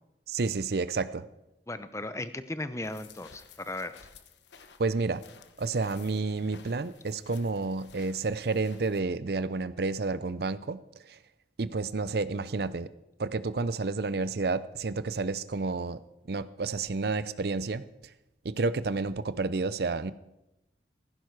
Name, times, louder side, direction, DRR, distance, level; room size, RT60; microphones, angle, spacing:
voice 1, 0.3-1.3 4.8-5.2 5.6-10.8 11.1-11.2 11.6-12.9 13.2-16.0 16.3-17.8 18.4-20.1, right 3 dB, 60° right, 15 dB, 0.6 m, -30 dB
voice 2, 1.7-3.9, left 2 dB, 15° left, 12 dB, 0.7 m, -36 dB
sound 1, 2.8-9.0, left 6 dB, 85° left, 1.1 m, -55 dB
16.0 x 15.5 x 4.7 m, 0.92 s
head